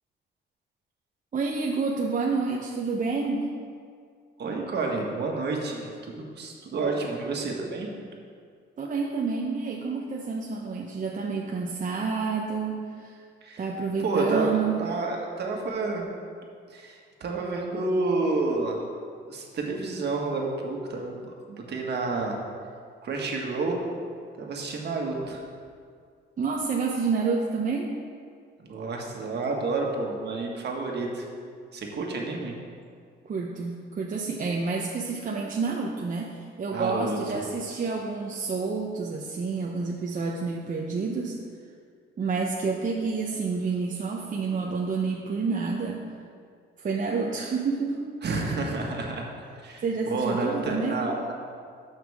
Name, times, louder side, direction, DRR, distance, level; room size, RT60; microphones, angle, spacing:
voice 1, 1.3-3.6 8.8-13.2 13.6-14.8 26.4-27.9 33.2-41.4 42.2-46.0 46.8-48.0 49.8-51.0, right 4 dB, 40° right, -1 dB, 0.8 m, -29 dB
voice 2, 4.4-7.9 13.4-13.7 14.0-16.1 16.7-18.8 19.3-22.4 23.0-23.8 24.4-25.4 28.6-31.3 31.7-32.5 36.7-37.4 48.2-49.3 49.6-51.3, right 3 dB, 60° right, 0 dB, 1.7 m, -30 dB
13.0 x 5.7 x 3.6 m, 2.2 s
cardioid pair, 90°, 20 cm